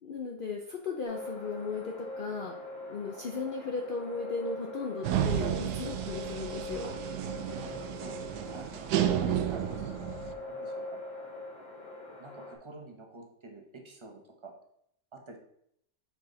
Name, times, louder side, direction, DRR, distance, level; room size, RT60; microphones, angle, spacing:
voice 1, 0.0-2.6 2.9-6.9, left 4 dB, 65° left, 1 dB, 0.5 m, -36 dB
sound 1, 1.1-12.6, left 2 dB, 80° left, 2.1 m, -43 dB
sound 2, 5.0-10.3, right 10 dB, 75° right, 1.1 m, -32 dB
voice 2, 7.5-8.2 8.5-11.0 11.6-11.7 12.2-14.5 15.1-15.4, right 2 dB, 25° right, 1 dB, 0.7 m, -48 dB
5.8 x 5.0 x 3.9 m, 0.73 s
omnidirectional pair, 1.8 m